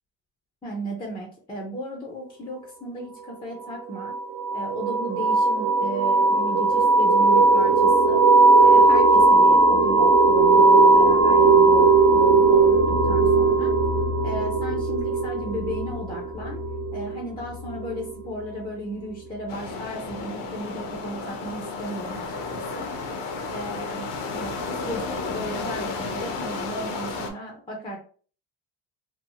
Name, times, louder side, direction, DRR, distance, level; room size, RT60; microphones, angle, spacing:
voice 1, 0.6-4.1 4.5-8.2 8.6-13.7 14.2-16.6 16.9-22.9 23.5-28.0, equal, 15° left, -1 dB, 0.4 m, -35 dB
sound 1, 4.0-18.4, right 3 dB, 55° right, 0.5 m, -18 dB
sound 2, 19.5-27.3, left 4 dB, 85° left, 0.7 m, -32 dB
2.6 x 2.0 x 2.7 m, 0.42 s
cardioid pair, 160°, 42 cm